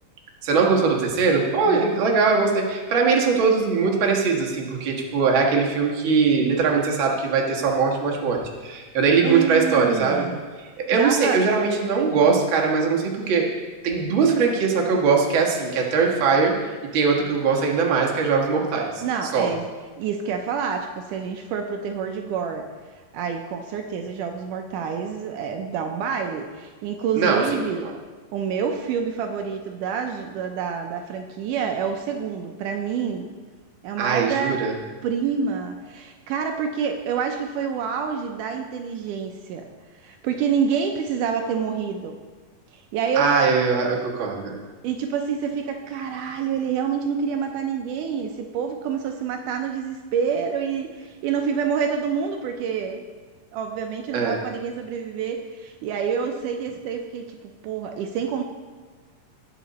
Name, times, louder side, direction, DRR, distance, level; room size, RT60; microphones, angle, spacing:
voice 1, 0.4-10.3 10.9-13.5 13.8-19.5 27.2-27.4 34.0-34.7 43.1-44.6 54.1-54.4, right 5 dB, 45° right, -1 dB, 1.9 m, -21 dB
voice 2, 1.7-2.1 9.2-10.4 10.9-11.4 19.0-19.7 20.0-22.7 23.1-27.9 28.3-33.3 33.8-34.6 35.0-39.7 40.0-42.2 42.7-43.4 44.8-53.0 53.5-57.4 57.6-58.4, right 7 dB, 80° right, 4 dB, 2.2 m, -27 dB
18.0 x 6.7 x 4.1 m, 1.4 s
omnidirectional pair, 3.8 m